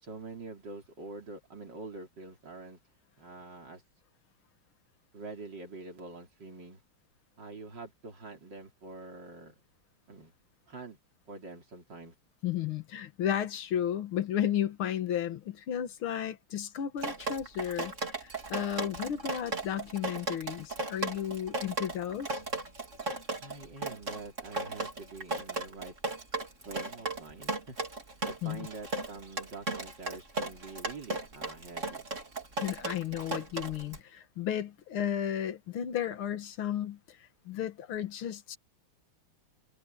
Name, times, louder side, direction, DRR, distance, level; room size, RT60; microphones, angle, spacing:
voice 1, 0.0-2.8 3.2-3.8 5.1-6.8 7.4-9.6 10.1-10.3 10.7-11.0 11.3-12.1 23.4-25.9 26.6-27.8 28.2-32.0, right 3 dB, 55° right, 4.6 m, -45 dB
voice 2, 12.4-17.9 18.2-22.4 28.4-28.7 32.6-38.6, left 10 dB, 85° left, 2.2 m, -33 dB
Drip, 17.0-34.0, right 2 dB, 35° right, 3.6 m, -36 dB
omnidirectional pair, 2.3 m